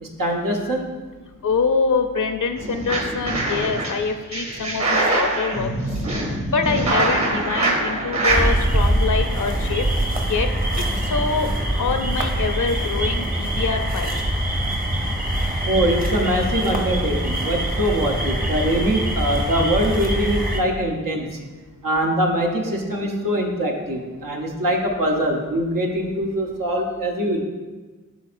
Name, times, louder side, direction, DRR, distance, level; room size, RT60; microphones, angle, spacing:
voice 1, 0.0-0.9 15.6-21.4 21.8-27.4, equal, 85° right, 1 dB, 0.9 m, -23 dB
voice 2, 1.4-5.7 6.5-9.9 10.3-10.5 11.1-11.5 11.8-14.2, left 5 dB, 70° left, 6 dB, 0.5 m, -24 dB
sound 1, 2.6-3.9 4.3-8.5, right 2 dB, 55° right, 2.0 m, -23 dB
sound 2, 8.3-20.6, right 1 dB, 25° right, 0.8 m, -23 dB
11.0 x 4.1 x 2.5 m, 1.3 s
wide cardioid pair, 45°, 32 cm